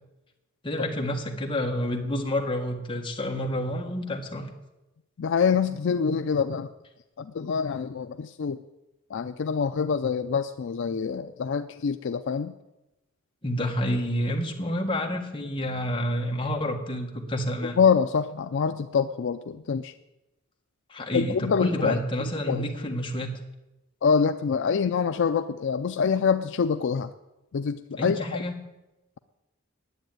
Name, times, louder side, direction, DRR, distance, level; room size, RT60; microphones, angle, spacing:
voice 1, 0.6-4.5 13.4-17.8 20.9-23.3 28.0-28.5, left 1 dB, 25° left, 1 dB, 1.6 m, -29 dB
voice 2, 5.2-6.7 7.2-8.6 9.1-12.5 17.6-19.9 21.1-22.0 22.5-22.7 24.0-27.1 27.5-28.4, left 6 dB, 60° left, 10 dB, 0.4 m, -25 dB
10.5 x 8.2 x 9.2 m, 1.0 s
head